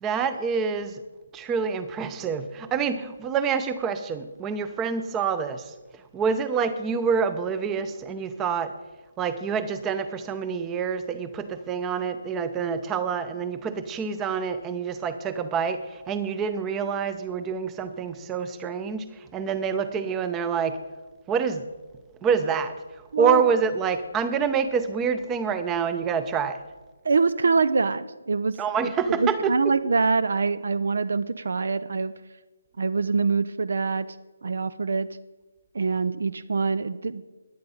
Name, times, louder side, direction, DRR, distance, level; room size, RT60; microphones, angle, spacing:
voice 1, 0.0-1.0 1.3-5.6 6.1-8.7 9.2-20.8 21.3-21.7 22.2-22.7 23.2-26.6 28.6-29.6, right 6 dB, 15° right, 12 dB, 0.7 m, -27 dB
voice 2, 27.0-28.6 28.8-28.9 29.2-32.1 32.8-34.1 34.4-35.2 35.7-37.2, right 4 dB, 60° right, 16 dB, 0.5 m, -24 dB
18.0 x 10.5 x 3.8 m, 1.2 s
figure-of-eight pair, 145°, 0 cm